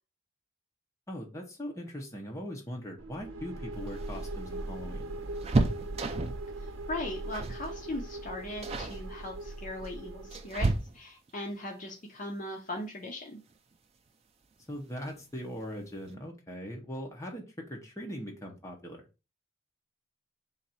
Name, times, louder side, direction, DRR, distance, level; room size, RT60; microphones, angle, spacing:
voice 1, 1.1-5.1 14.7-19.0, equal, 15° left, 0 dB, 0.9 m, -40 dB
sound 1, 3.0-10.7, right 2 dB, 80° right, 0.6 m, -40 dB
sound 2, 3.8-6.5 7.3-7.7 7.9-8.2 8.6-9.0 9.8-11.3 13.0-13.1 13.5-13.6 14.8-15.2 15.5-15.6 15.9-16.1, right 2 dB, 30° right, 0.4 m, -32 dB
voice 2, 6.6-13.4, left 1 dB, 40° left, 2 dB, 0.6 m, -39 dB
3.9 x 2.6 x 4.3 m, 0.31 s
head